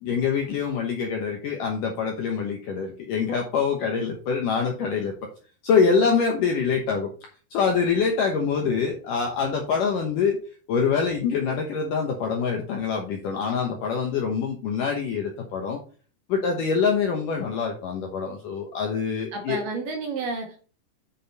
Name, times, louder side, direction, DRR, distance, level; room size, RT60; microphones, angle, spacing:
voice 1, 0.0-5.1 5.6-7.1 7.5-10.4 10.7-15.8 16.3-19.6, left 5 dB, 70° left, 2 dB, 2.0 m, -25 dB
voice 2, 19.3-20.6, right 3 dB, 65° right, 3 dB, 2.3 m, -30 dB
8.7 x 6.1 x 4.2 m, 0.39 s
omnidirectional pair, 5.3 m